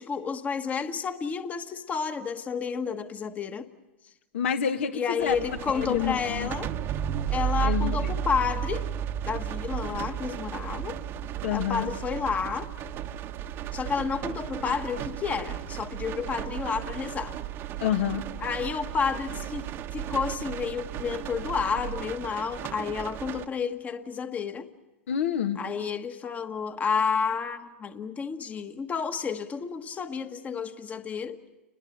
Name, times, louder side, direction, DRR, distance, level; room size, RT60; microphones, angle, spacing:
voice 1, 0.0-3.7 4.9-6.7 7.3-8.9 9.2-11.0 11.5-12.7 13.7-17.3 18.4-19.7 19.9-24.7 25.6-31.4, left 6 dB, 20° left, 1.3 m, -30 dB
voice 2, 4.3-5.3 5.7-6.5 7.6-8.1 11.4-11.9 17.8-18.2 25.1-25.6, left 8 dB, 70° left, 1.7 m, -28 dB
sound 1, 5.2-23.5, right 9 dB, 35° right, 1.2 m, -35 dB
sound 2, 5.4-22.0, right 13 dB, 65° right, 1.8 m, -40 dB
29.0 x 22.0 x 7.3 m
hypercardioid pair, 110°, 7 cm